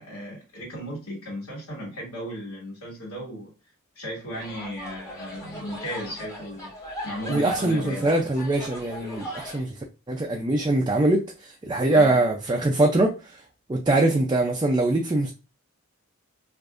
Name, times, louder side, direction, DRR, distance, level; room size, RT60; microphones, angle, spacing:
voice 1, 0.0-3.5 3.9-6.7 7.0-8.1 9.6-9.7 11.9-12.2, equal, 85° left, 2.0 m, -35 dB
sound 1, 4.3-9.6, equal, 15° left, 1.3 m, -38 dB
voice 2, 7.3-9.8 10.1-13.4 13.7-15.3, right 2 dB, 20° right, 0.4 m, -23 dB
4.8 x 2.6 x 2.4 m
head